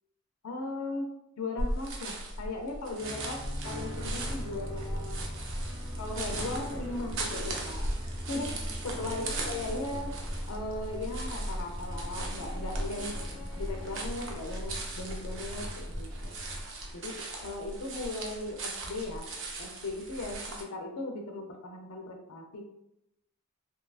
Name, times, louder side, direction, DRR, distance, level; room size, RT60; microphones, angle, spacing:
voice 1, 0.4-3.4 3.6-5.2 6.0-7.9 8.3-8.5 8.8-10.1 10.5-13.2 13.6-16.3 16.9-19.3 19.6-22.7, left 2 dB, 90° left, 3 dB, 0.4 m, -38 dB
sound 1, 1.6-20.6, right 2 dB, 65° right, 0.5 m, -39 dB
sound 2, 3.0-14.0, equal, 25° right, 0.8 m, -43 dB
sound 3, 3.9-16.6, equal, 10° left, 0.5 m, -39 dB
2.7 x 2.3 x 2.3 m, 0.83 s
head